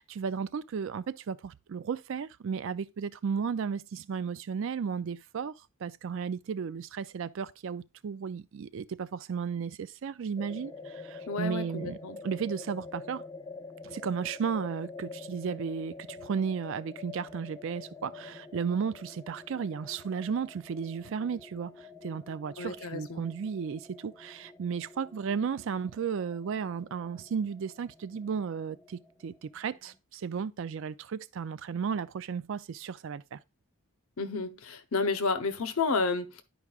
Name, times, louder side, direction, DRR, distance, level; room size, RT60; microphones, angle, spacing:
voice 1, 0.0-5.5 5.8-12.0 12.2-13.2 13.8-33.4, right 6 dB, 60° right, 0.4 m, -34 dB
sound 1, 10.4-30.0, left 4 dB, 15° left, 0.5 m, -47 dB
voice 2, 11.3-12.2 22.6-23.3 34.2-36.4, left 4 dB, 75° left, 0.8 m, -31 dB
11.0 x 4.7 x 2.4 m
head